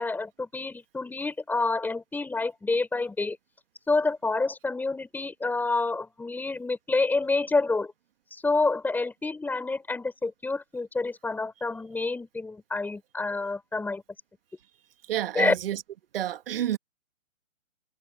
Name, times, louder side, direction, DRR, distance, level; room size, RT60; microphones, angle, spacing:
voice 1, 0.0-3.4 3.9-7.9 8.3-14.0 15.3-15.5, left 3 dB, 5° left, 6.5 m, -28 dB
voice 2, 15.1-15.8 16.1-16.8, right 11 dB, 45° right, 1.8 m, -29 dB
figure-of-eight pair, 140°, 41 cm